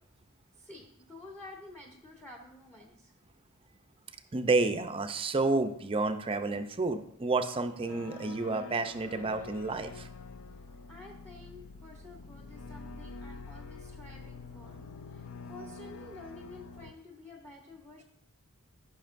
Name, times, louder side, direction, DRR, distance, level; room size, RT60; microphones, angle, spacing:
voice 1, 0.6-3.2 10.9-18.0, left 2 dB, 5° left, 1 dB, 0.7 m, -51 dB
voice 2, 4.3-10.1, right 3 dB, 25° right, 8 dB, 0.5 m, -30 dB
sound 1, 7.8-16.9, left 3 dB, 65° left, 0.5 m, -46 dB
13.5 x 5.8 x 2.5 m, 0.74 s
head